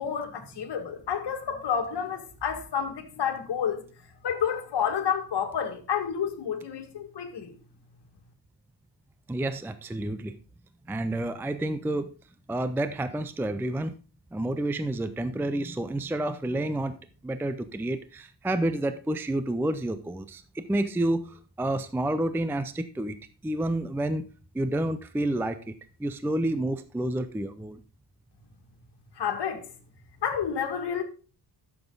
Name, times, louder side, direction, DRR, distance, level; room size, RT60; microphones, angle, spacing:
voice 1, 0.0-3.8 4.2-7.5 29.2-29.7 30.2-31.0, left 7 dB, 60° left, 1.9 m, -30 dB
voice 2, 9.3-10.4 10.9-12.1 12.5-13.9 14.3-17.0 17.2-23.2 23.4-24.2 24.5-25.7 26.0-27.8, right 1 dB, 5° right, 0.5 m, -29 dB
12.0 x 7.1 x 3.8 m
cardioid pair, 125°, 45 cm